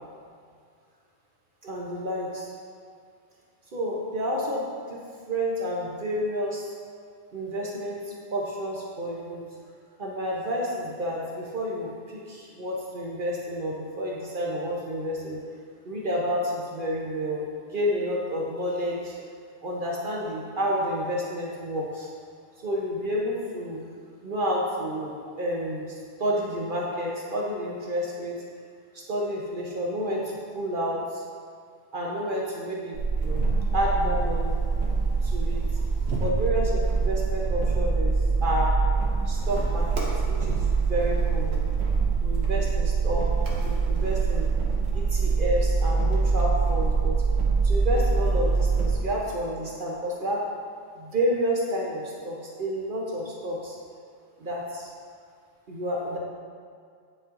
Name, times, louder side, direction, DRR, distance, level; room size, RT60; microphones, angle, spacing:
voice 1, 1.6-2.5 3.7-5.0 5.3-6.6 7.3-9.4 10.0-15.4 15.8-19.2 19.6-22.1 22.6-23.8 24.2-28.4 28.9-31.2 31.9-33.4 33.7-34.5 35.2-35.6 36.2-38.1 38.4-38.7 39.3-41.6 42.2-43.3 43.6-44.5 44.9-47.2 47.6-50.4 51.0-53.8 54.4-54.9 55.7-56.2, equal, 50° right, -3 dB, 0.8 m, -30 dB
sound 1, 32.9-48.9, right 4 dB, 85° right, 1.3 m, -24 dB
8.9 x 4.2 x 2.5 m, 2.2 s
omnidirectional pair, 1.3 m